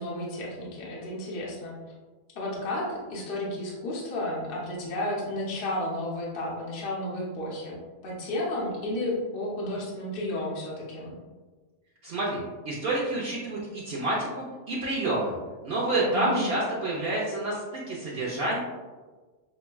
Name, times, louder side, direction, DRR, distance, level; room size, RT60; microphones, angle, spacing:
voice 1, 0.0-1.8 2.3-11.1 16.1-16.5, left 1 dB, 50° left, -4 dB, 0.9 m, -32 dB
voice 2, 12.0-15.4 15.6-18.6, right 2 dB, 60° right, -6 dB, 0.9 m, -29 dB
6.0 x 2.2 x 2.2 m, 1.3 s
omnidirectional pair, 1.3 m